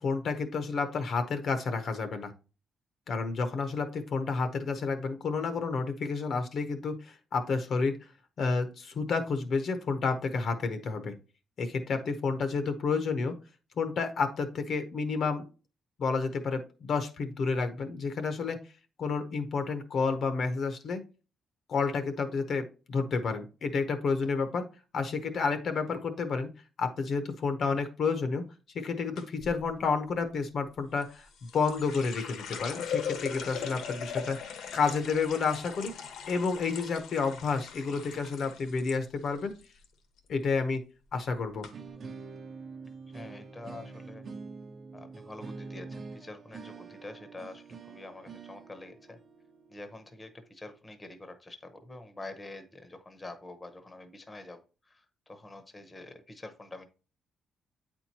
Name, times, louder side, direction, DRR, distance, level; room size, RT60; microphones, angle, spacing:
voice 1, 0.0-2.3 3.1-8.0 8.4-11.1 11.6-13.3 13.8-15.4 16.0-18.6 19.0-21.0 21.7-24.7 24.9-26.5 26.8-28.4 28.7-31.3 31.5-35.9 36.3-39.5 40.3-40.8 41.1-41.7, left 4 dB, 50° left, 8 dB, 0.7 m, -30 dB
sound 1, 29.2-29.6 31.0-39.0 39.3-39.9 40.2-40.5 41.2-41.3 41.6-41.7, left 7 dB, 80° left, 1.1 m, -39 dB
sound 2, 41.7-50.7, right 4 dB, 45° right, 0.9 m, -46 dB
voice 2, 43.1-44.3 44.9-49.2 49.7-56.9, left 2 dB, 15° left, 8 dB, 0.8 m, -46 dB
8.7 x 4.4 x 2.8 m, 0.33 s
cardioid pair, 160°, 0 cm